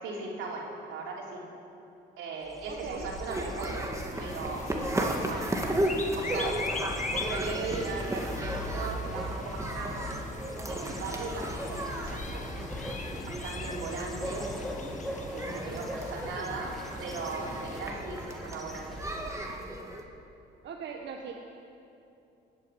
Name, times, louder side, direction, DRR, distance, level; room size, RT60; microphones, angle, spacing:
voice 1, 0.0-1.4 2.2-3.8 4.2-5.4 6.1-6.6 7.1-10.3 10.7-12.5 13.3-14.5 15.3-16.7 17.0-19.0, right 3 dB, 90° right, -2 dB, 3.6 m, -38 dB
sound 1, 2.5-19.8, equal, ahead, 1.8 m, -40 dB
voice 2, 2.7-3.1 15.7-15.9 20.6-21.3, right 6 dB, 65° right, 0 dB, 1.4 m, -40 dB
sound 2, 3.3-20.0, right 1 dB, 15° right, 1.9 m, -36 dB
sound 3, 4.1-17.8, left 3 dB, 40° left, 1.6 m, -42 dB
19.5 x 8.9 x 8.4 m, 2.7 s
cardioid pair, 90°, 20 cm